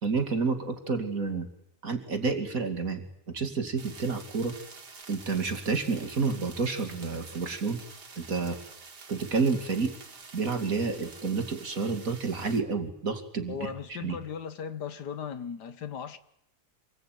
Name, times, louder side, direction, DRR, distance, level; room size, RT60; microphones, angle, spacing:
voice 1, 0.0-1.5 1.8-4.5 5.1-7.8 8.2-8.6 9.1-9.9 10.3-14.2, right 4 dB, 55° right, 3.0 m, -30 dB
sound 1, 3.8-12.6, right 4 dB, 80° right, 3.0 m, -48 dB
voice 2, 13.5-16.2, left 7 dB, 80° left, 2.0 m, -37 dB
27.0 x 20.5 x 9.3 m
omnidirectional pair, 1.7 m